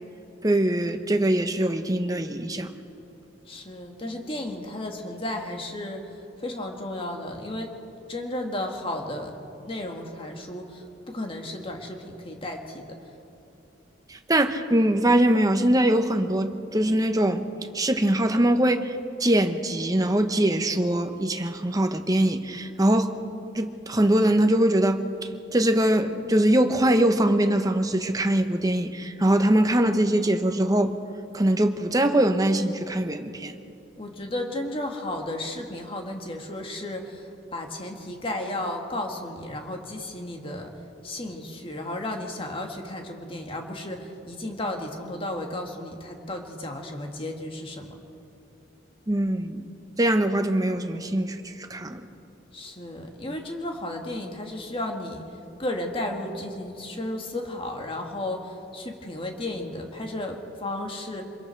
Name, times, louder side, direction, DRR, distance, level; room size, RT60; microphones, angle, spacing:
voice 1, 0.4-2.7 14.1-17.4 17.7-18.9 19.2-23.1 23.5-25.0 25.5-30.9 31.3-33.6 49.1-49.6 50.0-51.4 51.7-52.0, right 1 dB, 20° right, 7 dB, 1.0 m, -22 dB
voice 2, 3.5-7.7 8.1-13.1 34.0-40.7 41.0-48.0 52.5-55.3 55.6-61.2, left 1 dB, 30° left, 2 dB, 2.0 m, -34 dB
26.5 x 21.5 x 4.6 m, 2.7 s
head